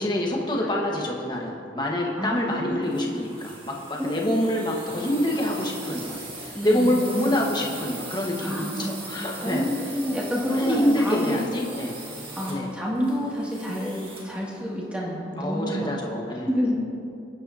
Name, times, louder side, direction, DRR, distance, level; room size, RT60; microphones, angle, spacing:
voice 1, 0.0-9.7 10.5-12.0 12.5-12.7 15.4-16.5, left 1 dB, 25° left, -1 dB, 1.4 m, -26 dB
voice 2, 2.2-3.2 4.0-4.3 6.5-7.1 8.4-11.5 12.4-15.9 16.4-16.8, equal, 5° right, -5 dB, 2.4 m, -29 dB
sound 1, 2.8-14.4, right 2 dB, 30° right, 2.0 m, -40 dB
27.0 x 9.0 x 2.8 m, 2.6 s
head